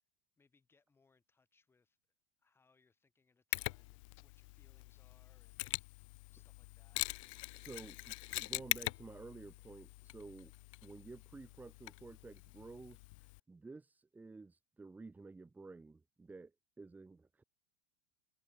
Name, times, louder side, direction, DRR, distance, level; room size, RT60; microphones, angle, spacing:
voice 1, 0.4-2.0 2.4-7.0 7.8-7.9, left 4 dB, 15° left, 4.0 m, -74 dB
Mechanisms, 3.5-13.4, left 25 dB, 65° left, 0.4 m, -43 dB
voice 2, 7.5-10.5 10.8-17.4, right 3 dB, 10° right, 1.3 m, -52 dB
supercardioid pair, 135°, 18 cm